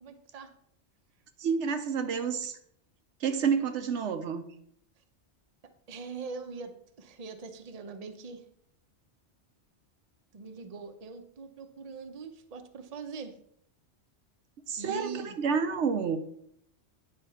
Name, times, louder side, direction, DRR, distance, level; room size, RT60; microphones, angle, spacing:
voice 1, 0.0-0.5 5.9-8.4 10.3-13.3 14.8-15.4, right 5 dB, 40° right, 7 dB, 0.8 m, -42 dB
voice 2, 1.4-2.6 3.2-4.5 14.7-16.2, right 6 dB, 80° right, 8 dB, 1.0 m, -29 dB
9.2 x 4.3 x 5.6 m, 0.68 s
omnidirectional pair, 1.2 m